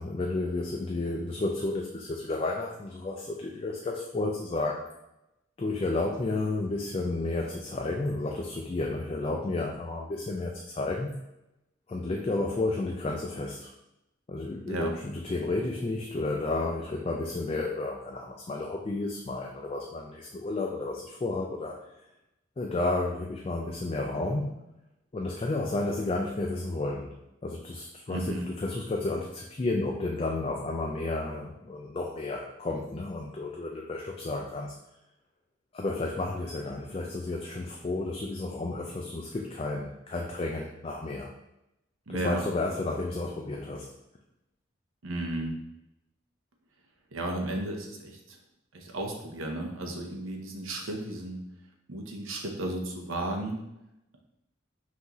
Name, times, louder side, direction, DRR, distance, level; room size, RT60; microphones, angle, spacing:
voice 1, 0.0-4.9 5.6-11.2 11.9-13.7 14.3-21.8 22.6-24.6 25.1-27.2 27.4-34.8 35.7-41.3 42.2-43.9, left 2 dB, 30° left, 0 dB, 0.3 m, -32 dB
voice 2, 28.1-28.5 42.1-42.4 45.0-45.6 47.1-48.4 48.7-51.4 51.9-53.6, right 1 dB, 85° right, 2 dB, 0.8 m, -34 dB
5.7 x 2.7 x 3.0 m, 0.89 s
head